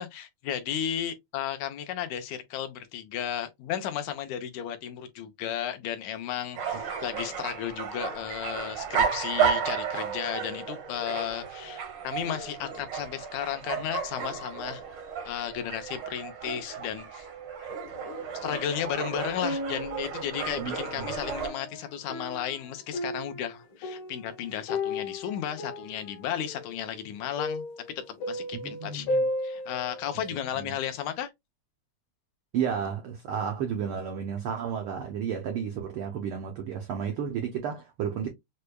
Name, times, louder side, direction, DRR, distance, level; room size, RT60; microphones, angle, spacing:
voice 1, 0.0-14.8 15.3-17.3 17.6-17.7 18.4-27.7 28.1-31.3, left 10 dB, 90° left, 2.1 m, -34 dB
sound 1, 6.6-21.5, right 7 dB, 65° right, 1.1 m, -33 dB
sound 2, 17.9-18.8 19.2-30.3 30.8-30.9, left 1 dB, 65° left, 1.1 m, -35 dB
voice 2, 20.6-21.0 28.6-29.3 30.6-30.8 32.5-38.3, right 7 dB, 90° right, 1.2 m, -32 dB
6.4 x 2.2 x 2.2 m
omnidirectional pair, 3.3 m